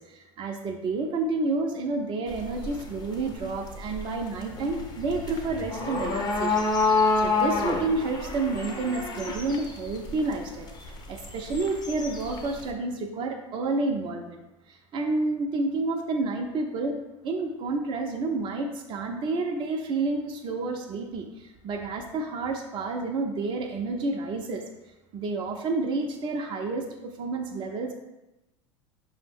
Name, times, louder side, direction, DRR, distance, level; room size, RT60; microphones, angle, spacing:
voice 1, 0.0-14.4 14.7-24.6 25.1-27.9, right 3 dB, 30° right, 3 dB, 0.5 m, -30 dB
sound 1, 2.3-12.7, left 3 dB, 25° left, 0.7 m, -29 dB
5.1 x 2.0 x 3.4 m, 0.97 s
hypercardioid pair, 80°, 16 cm